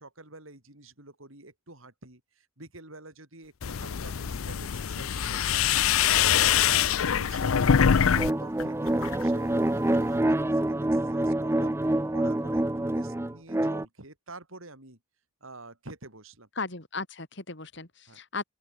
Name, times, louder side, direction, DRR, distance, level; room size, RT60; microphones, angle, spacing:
voice 1, 0.0-5.7 6.1-7.6 7.9-11.7 12.1-15.0 15.4-16.5 18.1-18.2, right 2 dB, 75° right, 6.9 m, -47 dB
sound 1, 3.6-8.3 8.6-9.2, left 8 dB, 85° left, 0.6 m, -24 dB
sound 2, 8.2-13.8, right 1 dB, 10° right, 0.5 m, -26 dB
voice 2, 16.6-18.4, left 3 dB, 55° left, 3.3 m, -36 dB
open air
head